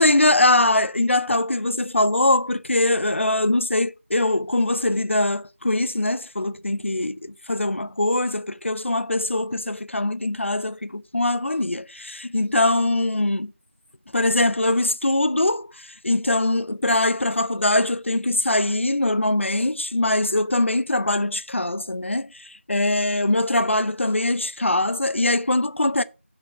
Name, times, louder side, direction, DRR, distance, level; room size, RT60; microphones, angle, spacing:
voice 1, 0.0-13.5 14.1-26.0, left 2 dB, 65° left, 0.7 m, -22 dB
8.5 x 5.1 x 5.2 m
figure-of-eight pair, 180°, 7 cm